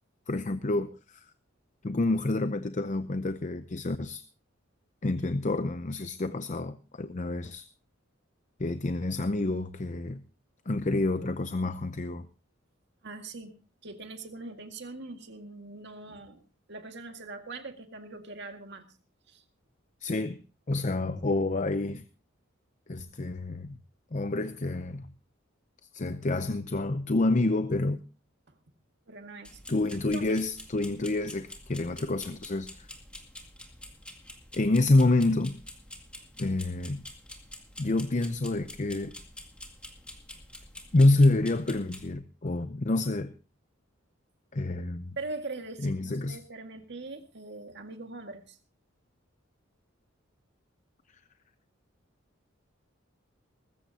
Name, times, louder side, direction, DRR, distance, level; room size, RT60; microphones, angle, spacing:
voice 1, 0.3-1.2 1.8-4.2 5.0-7.6 8.6-10.2 10.7-12.3 20.0-20.4 20.7-22.0 22.9-23.8 24.1-25.1 25.9-28.0 29.7-32.9 34.5-35.6 36.4-37.0 37.8-39.1 40.9-43.3 44.5-45.1 45.8-46.4, left 2 dB, 35° left, 0.6 m, -28 dB
voice 2, 13.0-13.5 13.8-16.4 16.7-18.9 19.3-19.4 28.5-28.6 29.1-29.6 30.1-30.3 45.2-48.6, right 3 dB, 55° right, 2.0 m, -42 dB
sound 1, 29.4-42.1, left 1 dB, 5° left, 2.1 m, -47 dB
20.5 x 15.0 x 2.8 m
head